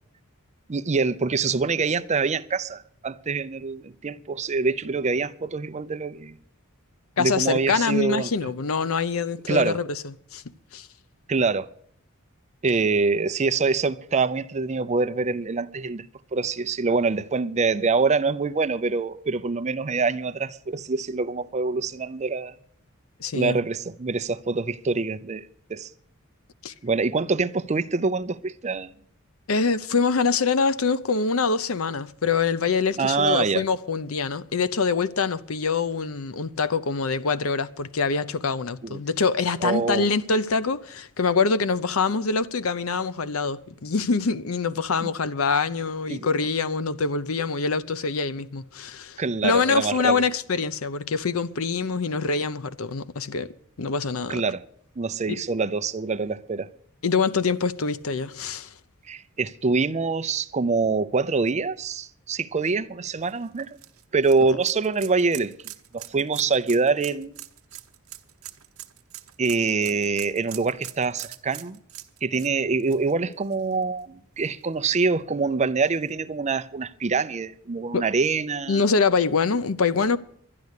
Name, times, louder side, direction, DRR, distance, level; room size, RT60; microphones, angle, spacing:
voice 1, 0.7-6.4 7.2-8.3 9.5-9.8 11.3-11.7 12.6-16.1 16.3-22.6 23.3-25.9 26.8-28.9 33.0-33.6 38.8-39.0 39.6-40.1 45.0-45.1 46.1-46.3 49.2-50.2 54.3-54.6 55.0-56.7 59.1-63.8 64.1-65.5 65.9-67.4 69.4-71.8 72.2-78.8, right 4 dB, 35° right, 0.5 m, -25 dB
voice 2, 7.2-10.4 10.7-10.9 23.2-23.6 26.6-26.7 29.5-53.5 53.8-54.4 55.3-55.4 57.0-58.7 77.9-78.0 78.7-80.2, left 4 dB, 75° left, 0.7 m, -25 dB
sound 1, 63.2-74.0 74.4-74.5 75.9-76.0, right 14 dB, 90° right, 0.9 m, -43 dB
12.0 x 10.5 x 8.2 m
head